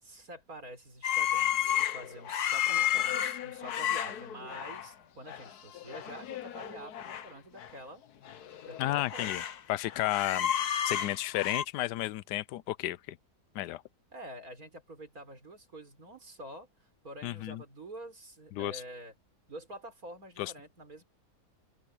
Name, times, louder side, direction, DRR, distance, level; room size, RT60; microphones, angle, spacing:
voice 1, 0.0-8.0 8.7-9.3 14.1-19.1 19.5-21.0, right 1 dB, 60° right, 5.5 m, -47 dB
sound 1, 1.0-4.9 5.3-5.5 5.8-7.3 7.6-7.7 8.3-9.6 9.9-11.6, left 11 dB, 70° left, 1.5 m, -32 dB
voice 2, 8.8-9.4 9.7-10.5 10.8-13.2 13.5-13.8 17.2-17.6 18.5-18.8 20.4-20.5, left 15 dB, 90° left, 1.2 m, -32 dB
open air
omnidirectional pair, 1.8 m